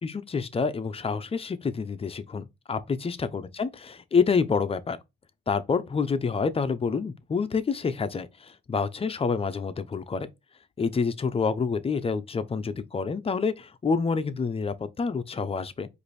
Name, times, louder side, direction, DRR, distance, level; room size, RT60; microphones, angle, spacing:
voice 1, 0.0-3.7 4.1-5.0 5.5-10.3 10.8-15.9, left 5 dB, 30° left, 0.6 m, -27 dB
4.8 x 2.7 x 4.1 m
cardioid pair, 90°, 20 cm